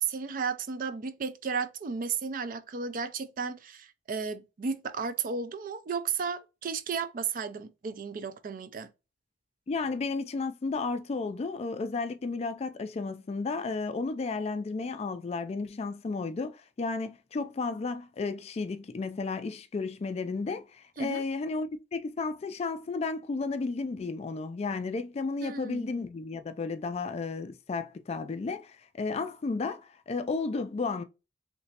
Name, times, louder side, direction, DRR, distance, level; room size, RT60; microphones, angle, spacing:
voice 1, 0.0-8.9 21.0-21.2 25.4-25.9, right 5 dB, 50° right, 0.4 m, -34 dB
voice 2, 9.7-31.0, left 4 dB, 35° left, 0.3 m, -33 dB
3.2 x 3.0 x 2.8 m
head